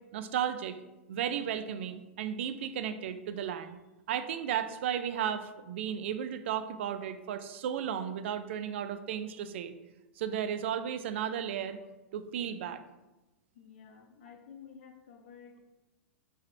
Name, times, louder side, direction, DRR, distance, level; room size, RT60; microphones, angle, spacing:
voice 1, 0.1-0.8 1.1-3.8 4.1-9.7 10.2-11.8 12.1-12.8, right 9 dB, 65° right, 10 dB, 0.4 m, -34 dB
voice 2, 13.5-15.6, left 7 dB, 65° left, 4 dB, 0.6 m, -52 dB
5.9 x 2.8 x 3.1 m, 1.0 s
hypercardioid pair, 105°, 7 cm